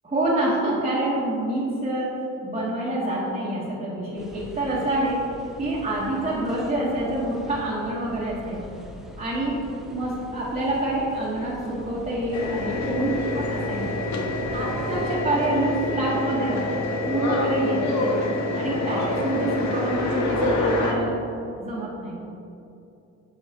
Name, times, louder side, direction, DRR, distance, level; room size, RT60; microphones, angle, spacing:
voice 1, 0.0-8.6 9.2-9.6 9.9-13.8 14.5-18.1 18.5-21.2 21.5-22.1, right 1 dB, 20° right, -8 dB, 1.3 m, -27 dB
sound 1, 4.1-15.2, equal, ahead, 0.6 m, -43 dB
sound 2, 12.3-20.9, left 1 dB, 65° left, 0.9 m, -26 dB
7.1 x 5.4 x 2.9 m, 2.8 s
cardioid pair, 90°, 30 cm